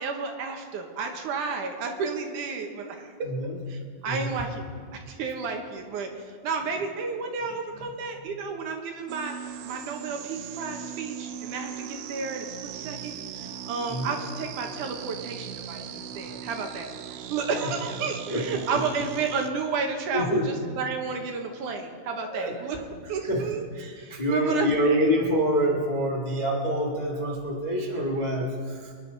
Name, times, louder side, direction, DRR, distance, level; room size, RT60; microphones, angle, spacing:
voice 1, 0.0-3.3 3.7-4.7 4.9-22.8 23.1-23.7 24.0-25.1, right 5 dB, 65° right, 3 dB, 2.3 m, -32 dB
voice 2, 3.2-3.5 4.0-4.3 13.9-14.1 18.3-18.4 18.7-18.8 20.1-20.5 22.3-22.5 23.2-23.4 23.7-28.9, equal, 85° left, -1 dB, 0.4 m, -26 dB
sound 1, 9.1-19.5, right 9 dB, 85° right, 2.7 m, -39 dB
23.5 x 11.0 x 4.0 m, 2.1 s
omnidirectional pair, 4.4 m